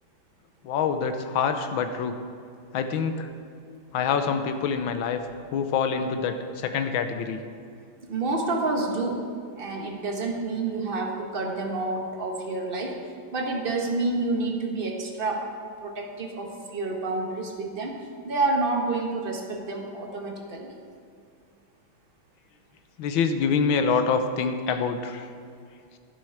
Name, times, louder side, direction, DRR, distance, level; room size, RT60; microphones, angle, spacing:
voice 1, 0.6-2.1 2.7-3.3 3.9-5.2 5.5-7.4 23.0-25.3, left 6 dB, 70° left, 8 dB, 1.5 m, -26 dB
voice 2, 8.1-9.2 9.6-12.9 13.3-15.4 15.8-20.8, right 3 dB, 30° right, 1 dB, 1.2 m, -29 dB
11.5 x 11.0 x 4.7 m, 2.2 s
omnidirectional pair, 2.3 m